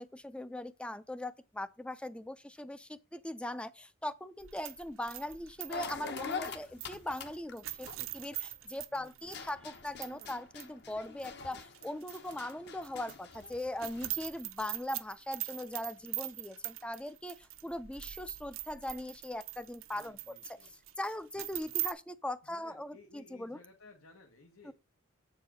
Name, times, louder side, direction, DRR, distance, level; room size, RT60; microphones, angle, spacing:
voice 1, 0.0-23.6 24.6-24.7, left 1 dB, 5° left, 0.4 m, -40 dB
sound 1, 4.4-10.3 10.6-10.7 11.2-12.5 12.8-21.9, right 16 dB, 70° right, 0.6 m, -42 dB
sound 2, 5.7-8.8 9.2-14.3, left 5 dB, 50° left, 0.9 m, -44 dB
voice 2, 8.9-9.6 19.9-20.7 22.5-24.7, left 3 dB, 85° left, 1.5 m, -58 dB
7.9 x 4.7 x 6.1 m
head